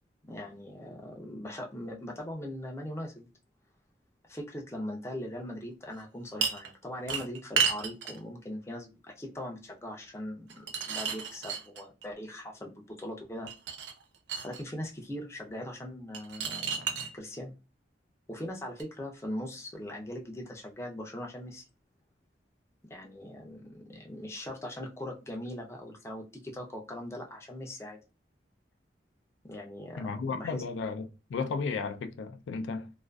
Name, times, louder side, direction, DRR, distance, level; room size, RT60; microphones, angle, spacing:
voice 1, 0.3-3.3 4.2-13.5 14.4-17.5 18.3-21.6 22.9-28.0 29.4-30.6, left 1 dB, 15° left, 0.4 m, -40 dB
sound 1, 6.4-6.7 7.1-8.2 10.5-12.1 13.5-14.6 16.1-17.1 18.8-18.9, right 6 dB, 80° right, 0.5 m, -32 dB
voice 2, 30.0-32.9, left 4 dB, 85° left, 0.3 m, -34 dB
2.4 x 2.3 x 2.2 m
head